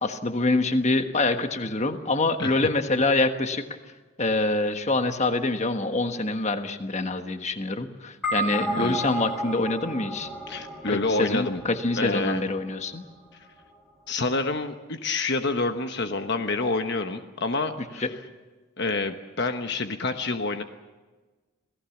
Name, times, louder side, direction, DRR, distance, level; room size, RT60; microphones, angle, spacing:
voice 1, 0.0-3.6 4.2-10.3 10.9-13.0 18.0-18.1, left 2 dB, 30° left, 7 dB, 1.4 m, -25 dB
sound 1, 8.2-12.8, right 1 dB, 5° left, 5.4 m, -33 dB
voice 2, 10.5-11.6 12.0-12.4 14.1-18.1 18.8-20.6, left 3 dB, 50° left, 7 dB, 1.1 m, -28 dB
27.5 x 18.0 x 7.2 m, 1.3 s
head